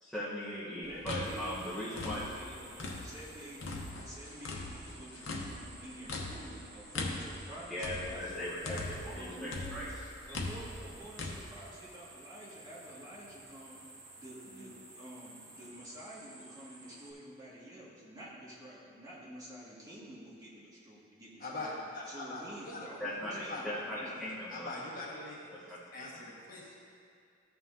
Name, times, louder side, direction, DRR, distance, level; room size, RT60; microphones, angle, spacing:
voice 1, 0.0-2.2 7.7-8.8 9.2-9.9 14.5-14.6 23.0-24.7 25.5-26.2, left 1 dB, 5° left, -11 dB, 1.2 m, -39 dB
sound 1, 0.8-3.3 3.6-9.2 9.5-11.4, left 2 dB, 75° left, 0.9 m, -40 dB
voice 2, 0.8-9.9 10.3-13.8 14.2-21.8 22.1-24.1, equal, 20° right, -9 dB, 2.1 m, -49 dB
sound 2, 1.2-17.1, right 2 dB, 45° right, 1.6 m, -54 dB
voice 3, 21.4-22.9 23.5-23.7 24.5-25.4 25.9-26.8, left 2 dB, 45° left, -5 dB, 1.6 m, -42 dB
14.0 x 5.6 x 2.8 m, 2.4 s
head